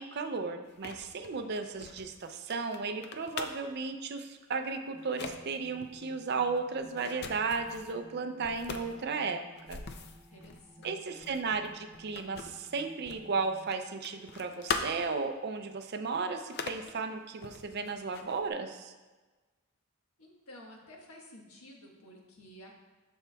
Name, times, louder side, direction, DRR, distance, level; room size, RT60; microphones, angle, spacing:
voice 1, 0.0-9.8 10.8-18.9, right 4 dB, 45° right, 7 dB, 0.4 m, -35 dB
sound 1, 0.7-3.8 4.5-4.7 5.0-5.4 5.8-8.0 8.4-13.3 13.6-15.3 15.7-15.8 16.4-16.9 17.4-18.5, left 4 dB, 45° left, 0.4 m, -41 dB
sound 2, 4.9-13.7, equal, 10° left, 0.8 m, -56 dB
voice 2, 10.3-11.0 20.2-22.8, left 1 dB, 80° left, -1 dB, 1.3 m, -52 dB
12.5 x 4.5 x 2.3 m, 1.2 s
head